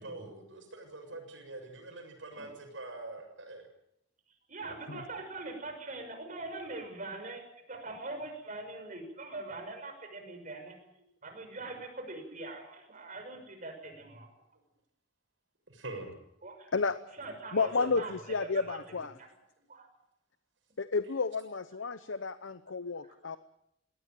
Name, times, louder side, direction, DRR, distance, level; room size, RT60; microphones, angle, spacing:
voice 1, 0.0-3.7 15.7-16.2 19.6-19.7, right 2 dB, 85° right, 4 dB, 7.1 m, -44 dB
voice 2, 4.5-7.4 7.7-10.8 11.2-14.3 16.4-16.7 17.1-18.1 18.4-19.3 19.7-19.9 21.9-22.0 23.0-23.3, right 2 dB, 45° right, 5 dB, 6.1 m, -42 dB
voice 3, 17.5-19.1 20.8-23.4, left 4 dB, 90° left, 13 dB, 0.9 m, -31 dB
21.5 x 17.5 x 9.1 m, 0.78 s
head